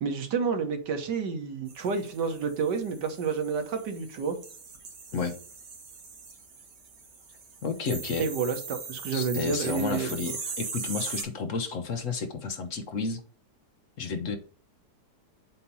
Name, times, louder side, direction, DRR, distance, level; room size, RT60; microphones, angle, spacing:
voice 1, 0.0-4.4 8.2-10.2, right 5 dB, 90° right, 6 dB, 1.8 m, -30 dB
sound 1, 1.7-11.2, right 4 dB, 70° right, 1.8 m, -40 dB
voice 2, 7.6-8.3 9.1-13.2 14.0-14.4, left 4 dB, 60° left, 8 dB, 1.0 m, -31 dB
7.6 x 2.8 x 5.4 m, 0.44 s
omnidirectional pair, 1.8 m